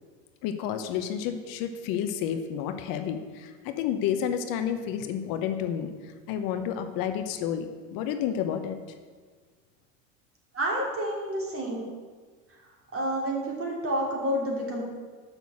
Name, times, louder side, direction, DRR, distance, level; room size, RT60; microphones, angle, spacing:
voice 1, 0.4-5.9 6.3-8.8, left 9 dB, 60° left, 8 dB, 0.9 m, -30 dB
voice 2, 10.5-11.8 12.9-14.8, equal, 35° right, -2 dB, 3.1 m, -29 dB
7.0 x 6.3 x 7.0 m, 1.5 s
hypercardioid pair, 90°, 38 cm